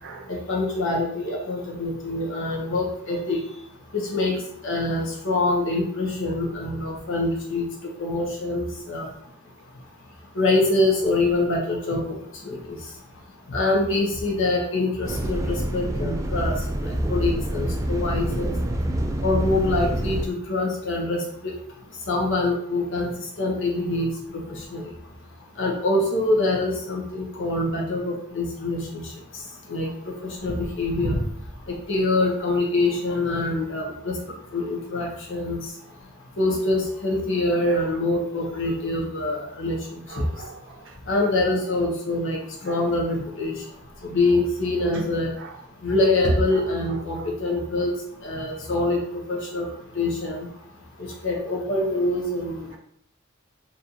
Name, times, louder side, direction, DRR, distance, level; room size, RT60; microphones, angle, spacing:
voice 1, 0.3-3.4 3.9-4.4 4.6-7.7 8.0-9.1 10.3-12.0 12.4-12.6 13.5-16.5 16.8-18.5 19.2-21.5 22.1-23.1 23.4-24.1 24.7-24.8 25.6-29.0 29.7-29.9 30.2-31.2 31.7-34.1 34.5-35.6 36.4-39.8 40.2-40.3 41.1-42.4 42.6-43.5 44.1-45.3 45.8-47.9 48.2-49.7 49.9-50.5 51.0-52.7, left 2 dB, 65° left, -1 dB, 1.0 m, -24 dB
sound 1, 15.0-20.3, right 1 dB, 15° right, 0.3 m, -26 dB
voice 2, 40.1-41.0 42.6-42.8 44.9-45.1 45.4-45.5 46.2-46.6 47.1-47.3, right 1 dB, 60° right, 3 dB, 0.6 m, -30 dB
4.1 x 2.7 x 2.9 m, 0.71 s
head